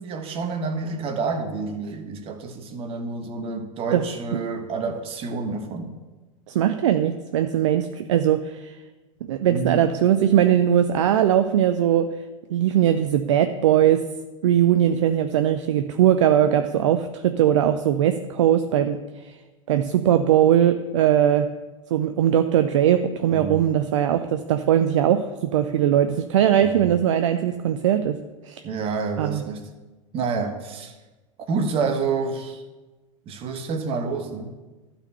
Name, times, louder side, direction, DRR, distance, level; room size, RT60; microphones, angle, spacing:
voice 1, 0.0-5.9 9.5-9.9 23.3-23.7 26.6-26.9 28.6-29.6 30.1-31.0 31.5-32.6 33.3-34.6, right 4 dB, 35° right, 1.2 m, -28 dB
voice 2, 6.5-8.8 9.2-12.1 12.5-14.0 14.4-19.4 19.7-21.5 21.9-28.2 28.4-28.6 29.2-29.4, right 10 dB, 65° right, 0.5 m, -20 dB
12.0 x 4.3 x 6.7 m
figure-of-eight pair, 90°, 17 cm